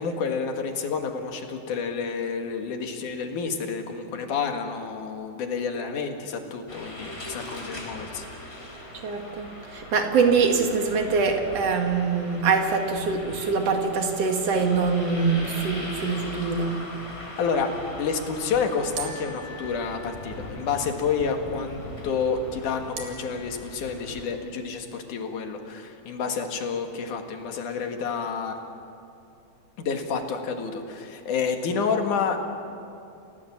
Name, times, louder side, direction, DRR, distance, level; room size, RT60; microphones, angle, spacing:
voice 1, 0.0-8.3 8.6-8.7 17.4-17.7 18.0-28.8 29.8-32.4, left 5 dB, 80° left, 4 dB, 3.3 m, -29 dB
sound 1, 6.7-24.3, left 1 dB, 20° left, 4.2 m, -40 dB
voice 2, 9.0-16.8, right 5 dB, 55° right, 4 dB, 2.9 m, -24 dB
sound 2, 15.2-16.6 19.0-20.6 23.0-24.1, right 4 dB, 80° right, 3.7 m, -42 dB
29.0 x 17.5 x 7.3 m, 2.6 s
omnidirectional pair, 3.5 m